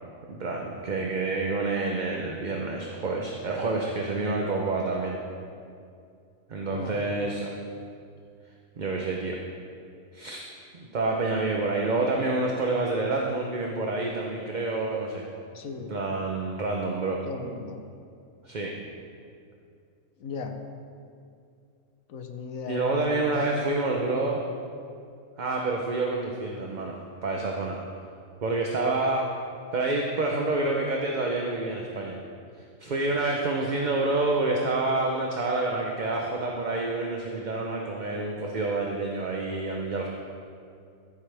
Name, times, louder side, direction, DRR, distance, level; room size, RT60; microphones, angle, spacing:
voice 1, 0.3-5.2 6.5-7.5 8.8-9.4 10.1-10.4 10.7-15.3 15.9-17.2 18.4-18.7 22.7-24.4 25.4-27.8 28.4-29.3 29.7-32.2 32.8-40.1, right 2 dB, 40° right, 0 dB, 0.8 m, -28 dB
voice 2, 15.5-15.9 17.2-17.8 20.2-20.6 22.1-23.4, left 5 dB, 85° left, 6 dB, 1.3 m, -37 dB
14.0 x 8.4 x 3.4 m, 2.4 s
omnidirectional pair, 1.4 m